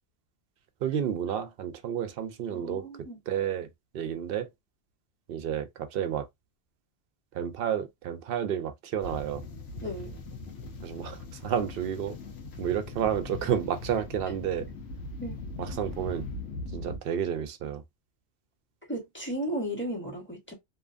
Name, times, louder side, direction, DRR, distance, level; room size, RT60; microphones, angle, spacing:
voice 1, 0.8-4.5 5.3-6.3 7.3-9.4 10.8-12.2 12.6-14.7 15.6-16.3 16.7-17.8, right 9 dB, 65° right, 0.7 m, -31 dB
voice 2, 2.5-3.2 9.8-10.1 15.2-15.4 18.9-20.5, equal, 10° left, 1.1 m, -35 dB
sound 1, 9.0-17.0, left 3 dB, 85° left, 1.1 m, -40 dB
2.7 x 2.4 x 2.4 m
omnidirectional pair, 1.2 m